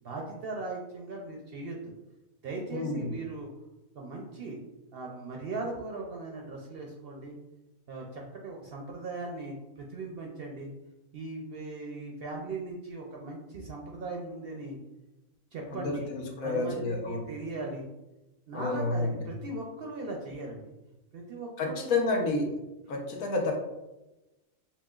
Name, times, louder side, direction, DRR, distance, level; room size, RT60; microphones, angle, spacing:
voice 1, 0.0-1.9 2.4-3.5 3.9-4.6 4.9-7.4 7.9-10.7 11.1-14.8 15.5-16.1 16.4-17.9 18.5-20.7 21.1-21.9, right 3 dB, 65° right, 0 dB, 0.6 m, -39 dB
voice 2, 2.7-3.1 15.7-17.2 18.5-19.1 21.6-22.5 22.9-23.5, left 3 dB, 80° left, 1 dB, 1.2 m, -30 dB
5.8 x 2.3 x 2.3 m, 0.99 s
omnidirectional pair, 1.4 m